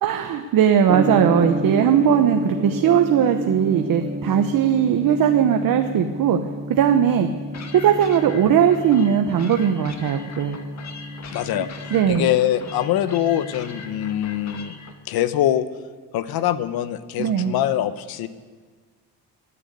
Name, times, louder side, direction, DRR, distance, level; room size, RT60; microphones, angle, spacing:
voice 1, 0.0-6.4 6.7-7.3 7.7-10.6 11.9-12.3 17.2-17.5, right 8 dB, 65° right, 6 dB, 1.1 m, -19 dB
Gong, 0.9-14.6, right 1 dB, 30° right, 2.2 m, -31 dB
sound 1, 7.5-14.9, left 5 dB, 50° left, 1.8 m, -41 dB
voice 2, 11.3-11.7 12.1-14.7 15.1-15.7 16.1-18.3, left 12 dB, 75° left, 13 dB, 1.0 m, -23 dB
14.0 x 9.9 x 8.3 m, 1.5 s
cardioid pair, 90°, 36 cm